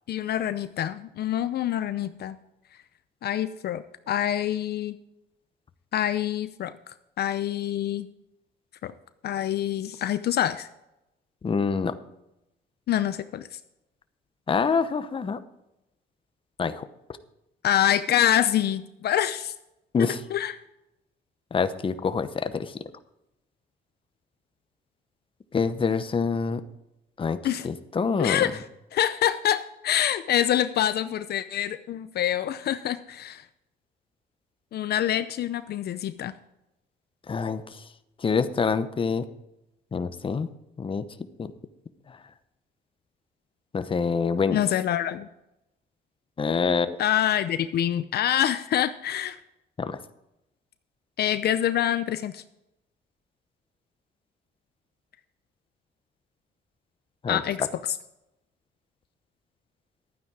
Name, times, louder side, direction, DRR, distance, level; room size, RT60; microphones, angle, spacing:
voice 1, 0.1-2.4 3.2-5.0 5.9-6.7 7.2-8.1 8.8-8.9 9.2-10.7 12.9-13.5 17.6-19.5 20.0-20.6 27.4-27.7 28.2-28.6 28.9-33.4 34.7-36.3 44.5-45.3 47.0-49.4 51.2-52.4 57.3-58.0, left 11 dB, 60° left, 12 dB, 0.6 m, -26 dB
voice 2, 11.4-11.9 14.5-15.4 16.6-16.8 19.9-20.2 21.5-22.7 25.5-26.6 27.2-27.4 27.6-28.4 37.3-37.6 38.2-39.2 39.9-40.5 40.8-41.0 41.4-41.5 43.7-44.6 46.4-46.9 49.8-50.0 57.2-57.4, left 5 dB, 30° left, 11 dB, 0.9 m, -26 dB
12.0 x 9.4 x 4.8 m, 0.90 s
cardioid pair, 110°, 18 cm